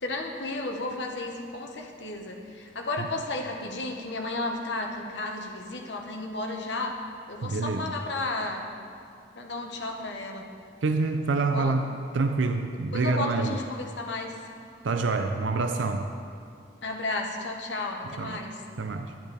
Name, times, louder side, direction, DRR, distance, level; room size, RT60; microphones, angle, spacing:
voice 1, 0.0-7.0 7.3-8.8 9.3-10.5 11.4-11.8 12.9-14.3 16.8-18.6, left 2 dB, 65° left, 2 dB, 1.1 m, -33 dB
voice 2, 7.4-7.9 10.8-13.6 14.8-16.1 18.2-18.4 18.8-19.2, right 3 dB, 75° right, 6 dB, 0.5 m, -27 dB
11.5 x 10.5 x 3.4 m, 2.3 s
head